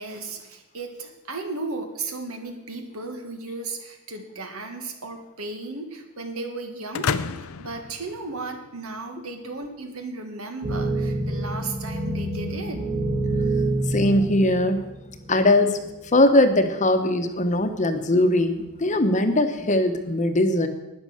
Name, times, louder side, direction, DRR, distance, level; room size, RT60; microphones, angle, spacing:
voice 1, 0.0-7.1 7.6-12.9, right 3 dB, 75° right, 5 dB, 2.0 m, -35 dB
sound 1, 6.9-8.9, left 5 dB, 75° left, 0.6 m, -30 dB
sound 2, 10.6-15.4 16.1-16.2 17.4-18.0 18.6-19.0, right 2 dB, 30° right, 1.9 m, -27 dB
voice 2, 13.9-14.8 15.3-20.7, left 1 dB, 35° left, 8 dB, 1.1 m, -20 dB
12.0 x 9.7 x 6.6 m, 1.0 s
head